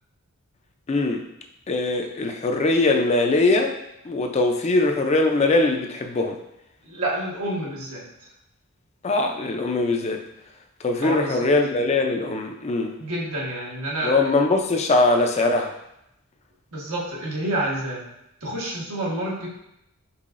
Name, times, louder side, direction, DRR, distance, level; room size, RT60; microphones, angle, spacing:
voice 1, 0.9-1.2 1.7-3.7 4.0-6.4 9.0-10.2 10.8-13.0 14.0-15.7, left 2 dB, 30° left, 4 dB, 0.4 m, -21 dB
voice 2, 6.8-8.3 11.0-11.5 13.0-14.2 15.4-15.5 16.7-18.0 18.4-19.5, right 1 dB, 90° right, -4 dB, 1.4 m, -29 dB
5.6 x 3.7 x 2.5 m, 0.83 s
head